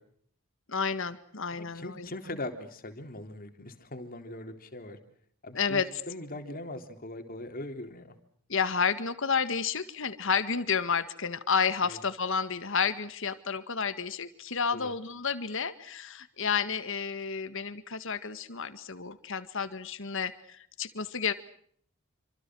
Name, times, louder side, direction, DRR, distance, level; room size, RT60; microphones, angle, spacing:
voice 1, 0.7-2.1 5.5-5.9 8.5-21.3, left 6 dB, 65° left, 11 dB, 1.8 m, -31 dB
voice 2, 1.5-5.0 5.4-8.2 11.8-12.0 14.7-14.9, left 1 dB, 45° left, 7 dB, 3.7 m, -40 dB
27.5 x 26.0 x 6.3 m, 0.64 s
head